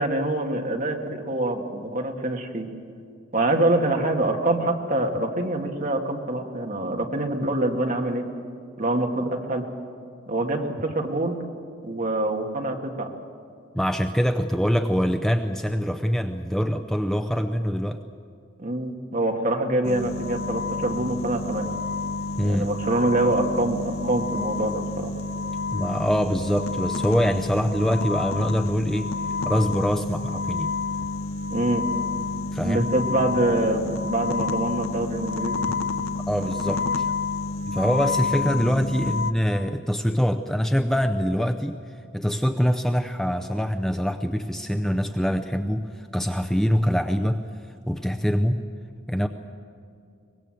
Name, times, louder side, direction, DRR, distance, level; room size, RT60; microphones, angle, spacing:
voice 1, 0.0-2.7 3.3-8.2 8.8-9.7 10.3-11.4 11.8-13.1 18.6-21.7 22.4-25.1 31.5-31.9 32.6-35.6, right 1 dB, 40° right, 3 dB, 1.9 m, -25 dB
voice 2, 13.7-18.0 22.4-22.7 25.7-29.1 29.4-30.7 32.5-32.9 36.3-37.1 37.7-41.8 42.1-47.4 47.9-48.6 49.1-49.3, equal, ahead, 7 dB, 0.5 m, -24 dB
sound 1, 19.8-39.3, left 4 dB, 90° left, 0.9 m, -29 dB
23.5 x 20.0 x 7.8 m, 2.5 s
head